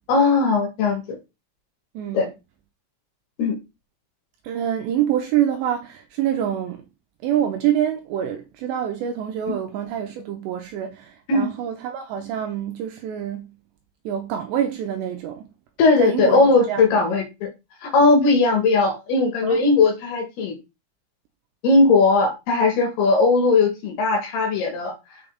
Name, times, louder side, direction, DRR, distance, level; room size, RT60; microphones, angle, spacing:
voice 1, 0.1-1.0 2.1-2.3 3.4-3.5 11.3-11.5 15.8-17.5 17.8-20.6 21.6-24.9, left 3 dB, 65° left, 3.1 m, -18 dB
voice 2, 1.9-2.3 4.4-6.8 7.2-13.5 14.1-15.5 16.0-17.1 19.4-19.6, right 10 dB, 80° right, 2.7 m, -26 dB
6.9 x 5.5 x 3.5 m
omnidirectional pair, 5.7 m